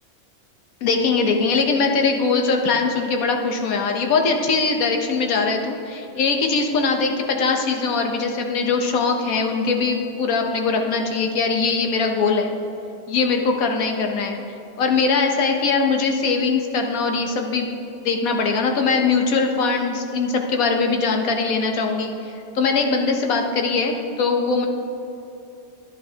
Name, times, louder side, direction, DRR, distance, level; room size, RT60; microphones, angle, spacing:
voice 1, 0.8-12.5 13.1-14.4 14.8-17.7 18.0-24.7, left 4 dB, 85° left, 3 dB, 1.3 m, -21 dB
11.0 x 10.5 x 2.8 m, 2.9 s
omnidirectional pair, 1.4 m